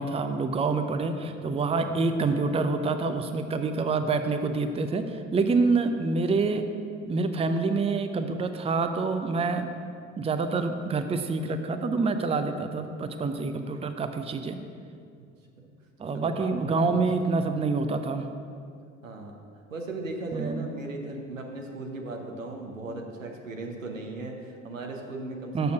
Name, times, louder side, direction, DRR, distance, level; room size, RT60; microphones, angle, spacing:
voice 1, 0.0-6.6 7.1-9.7 10.2-14.6 16.0-18.3 20.3-20.7 25.5-25.7, right 4 dB, 15° right, 8 dB, 0.6 m, -27 dB
voice 2, 1.2-1.5 1.8-1.9 3.6-3.8 15.6-15.7 16.1-16.9 19.0-19.4 19.7-25.7, right 2 dB, 85° right, 2 dB, 0.9 m, -38 dB
6.7 x 6.7 x 6.4 m, 2.3 s
figure-of-eight pair, 55°, 38 cm